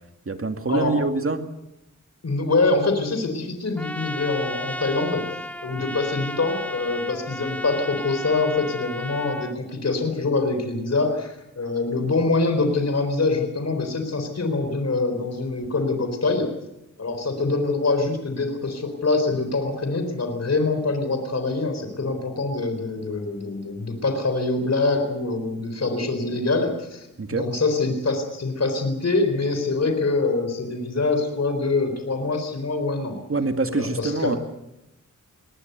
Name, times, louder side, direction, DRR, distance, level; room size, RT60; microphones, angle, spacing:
voice 1, 0.3-1.4 27.2-27.5 33.3-34.4, right 3 dB, 45° right, 7 dB, 2.2 m, -25 dB
voice 2, 2.2-5.2 5.6-16.5 17.0-33.2 33.7-34.4, left 3 dB, 55° left, 6 dB, 4.1 m, -24 dB
Trumpet, 3.8-9.5, left 1 dB, 5° left, 1.2 m, -34 dB
22.0 x 18.5 x 8.1 m, 0.88 s
wide cardioid pair, 75°, 31 cm